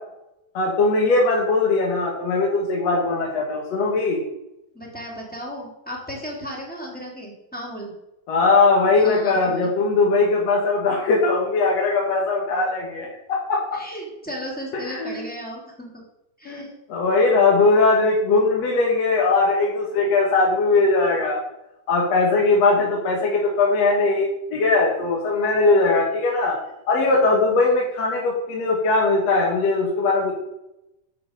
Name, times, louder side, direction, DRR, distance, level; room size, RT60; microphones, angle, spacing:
voice 1, 0.5-4.2 8.3-13.8 14.8-15.2 16.5-21.4 21.9-26.6 26.9-30.3, left 3 dB, 50° left, -2 dB, 2.7 m, -20 dB
voice 2, 4.7-7.9 9.0-9.4 13.7-16.0 16.4-16.7, equal, 5° left, -2 dB, 2.8 m, -35 dB
11.0 x 6.9 x 6.8 m, 0.88 s
omnidirectional pair, 4.1 m